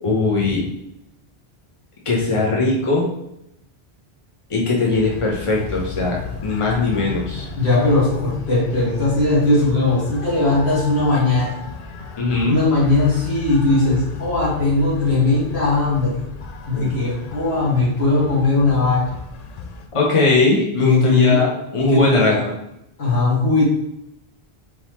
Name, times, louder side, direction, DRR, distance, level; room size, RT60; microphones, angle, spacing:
voice 1, 0.0-0.7 2.0-3.1 4.5-7.5 12.2-12.6 19.9-22.5, left 3 dB, 30° left, -3 dB, 0.9 m, -19 dB
sound 1, 4.9-19.9, left 4 dB, 55° left, 0.5 m, -34 dB
voice 2, 7.6-11.5 12.5-16.2 16.7-19.0 20.8-21.5 21.8-22.4 23.0-23.6, left 2 dB, 90° left, -7 dB, 2.1 m, -18 dB
4.3 x 3.8 x 3.0 m, 0.82 s
omnidirectional pair, 1.1 m